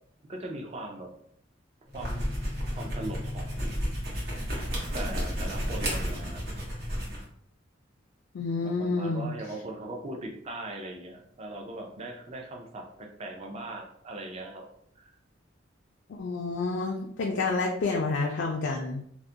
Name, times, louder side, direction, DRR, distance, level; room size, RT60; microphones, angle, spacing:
voice 1, 0.3-1.1 1.9-2.4 2.7-3.8 4.4-4.6 4.9-6.4 8.6-14.6 15.0-15.1, right 1 dB, 30° right, 2 dB, 0.4 m, -40 dB
sound 1, 1.9-7.2, equal, 55° right, 0.8 m, -32 dB
voice 2, 8.3-9.3 16.2-19.0, left 3 dB, 60° left, 0 dB, 0.3 m, -29 dB
2.3 x 2.1 x 2.6 m, 0.67 s
head